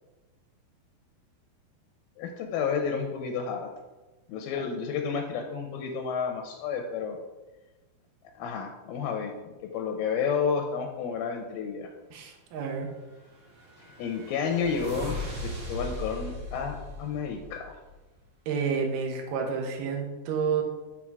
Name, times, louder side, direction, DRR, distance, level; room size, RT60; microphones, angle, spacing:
voice 1, 2.2-3.7 4.3-7.2 8.4-11.9 14.0-15.2 15.4-17.8, left 6 dB, 85° left, 4 dB, 2.3 m, -31 dB
voice 2, 12.1-12.9 18.5-20.6, right 6 dB, 75° right, 2 dB, 2.4 m, -30 dB
sound 1, 13.1-18.0, left 1 dB, 50° right, 1.6 m, -39 dB
7.4 x 3.6 x 4.6 m, 1.1 s
omnidirectional pair, 4.1 m